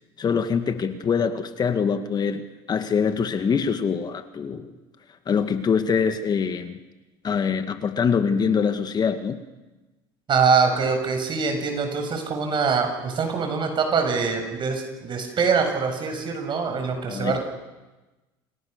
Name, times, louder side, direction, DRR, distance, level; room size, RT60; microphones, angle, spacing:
voice 1, 0.2-4.7 5.3-6.8 7.2-9.4 17.1-17.4, left 6 dB, 35° left, 9 dB, 2.1 m, -24 dB
voice 2, 10.3-17.4, right 5 dB, 40° right, 5 dB, 7.3 m, -24 dB
29.0 x 28.5 x 6.9 m, 1.1 s
supercardioid pair, 95°, 13 cm